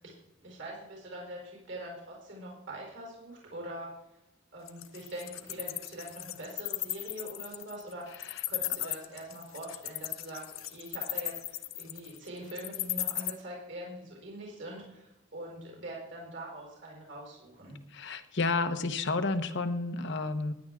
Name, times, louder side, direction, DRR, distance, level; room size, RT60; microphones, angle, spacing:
voice 1, 0.4-3.9 4.5-17.8, right 1 dB, 60° right, -2 dB, 4.4 m, -43 dB
Wild animals, 4.7-13.3, left 16 dB, 80° left, 0.7 m, -35 dB
voice 2, 17.9-20.5, left 3 dB, 60° left, 8 dB, 1.0 m, -31 dB
16.0 x 10.5 x 3.7 m, 0.89 s
head